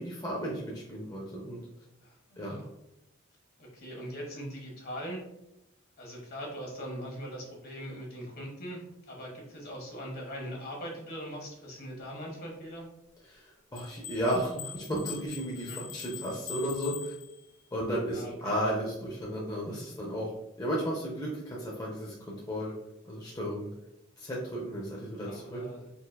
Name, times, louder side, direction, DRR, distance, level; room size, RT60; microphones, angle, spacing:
voice 1, 0.0-1.6 2.4-2.6 13.3-17.1 17.7-20.3 20.6-22.7 23.1-23.7 24.2-25.6, equal, 20° left, -4 dB, 0.7 m, -34 dB
voice 2, 2.0-2.7 3.6-5.2 6.0-8.8 9.1-12.8 15.7-15.8 18.1-18.5 19.9-20.0 25.2-25.9, equal, 50° left, -1 dB, 1.4 m, -41 dB
sound 1, 13.7-17.7, left 9 dB, 70° left, 0.7 m, -44 dB
4.2 x 3.8 x 2.3 m, 0.88 s
head